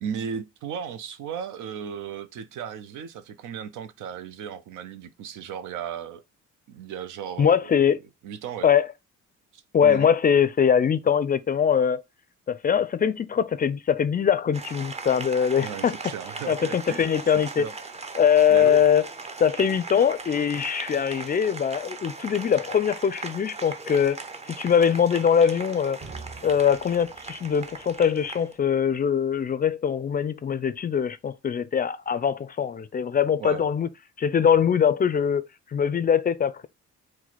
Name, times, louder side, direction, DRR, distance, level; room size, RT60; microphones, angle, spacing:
voice 1, 0.0-6.2 6.7-7.7 8.2-8.7 9.5-10.1 15.6-17.1 17.6-17.7 18.5-18.9 33.4-33.7, right 8 dB, 80° right, 0.6 m, -35 dB
voice 2, 7.4-8.0 8.6-8.9 9.7-12.0 12.5-15.9 16.5-17.6 18.1-19.1 19.4-24.2 24.5-26.0 26.4-33.9 34.2-36.7, left 7 dB, 30° left, 0.4 m, -22 dB
Applause, 14.5-28.6, right 4 dB, 20° right, 0.5 m, -39 dB
sound 1, 25.0-28.9, right 4 dB, 35° right, 0.9 m, -47 dB
4.6 x 2.1 x 4.0 m
cardioid pair, 90°, 30 cm